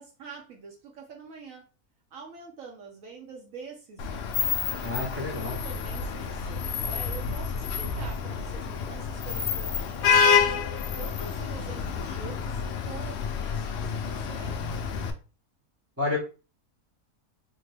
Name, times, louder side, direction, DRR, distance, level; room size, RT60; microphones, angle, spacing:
voice 1, 0.0-1.7 2.1-4.4 5.3-10.5 11.0-14.6, right 4 dB, 65° right, 1 dB, 1.0 m, -45 dB
Vehicle horn car horn honking / Traffic noise roadway noise, 4.0-15.1, left 6 dB, 75° left, 0.6 m, -28 dB
voice 2, 4.8-5.6 16.0-16.2, left 3 dB, 10° right, -1 dB, 0.8 m, -30 dB
3.6 x 2.1 x 3.2 m, 0.33 s
omnidirectional pair, 1.6 m